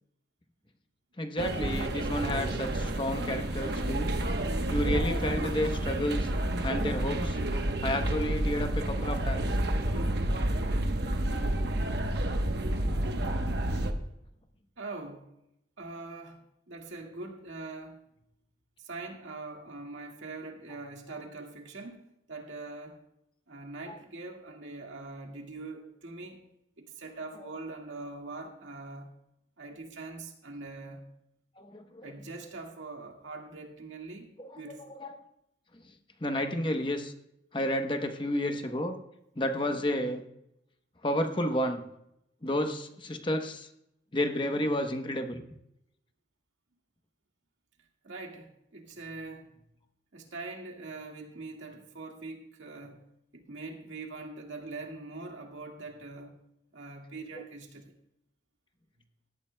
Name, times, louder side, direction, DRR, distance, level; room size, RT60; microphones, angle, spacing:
voice 1, 1.2-4.1 4.7-6.3 6.6-7.4 7.8-9.5 31.6-32.1 34.4-34.5 34.9-35.1 36.2-37.1 37.5-39.0 39.4-40.2 41.0-41.8 42.4-43.7 44.1-45.4, left 1 dB, 25° left, 5 dB, 0.9 m, -31 dB
sound 1, 1.4-13.9, right 1 dB, 60° right, 1.0 m, -30 dB
voice 2, 14.8-15.2 15.8-16.4 16.7-18.0 18.8-22.0 22.3-23.0 23.5-26.4 26.8-29.1 29.6-31.0 32.0-35.0 48.0-49.5 50.1-53.0 53.3-56.4 56.7-57.9, right 3 dB, 85° right, 1 dB, 1.9 m, -43 dB
18.0 x 13.5 x 2.2 m, 0.81 s
head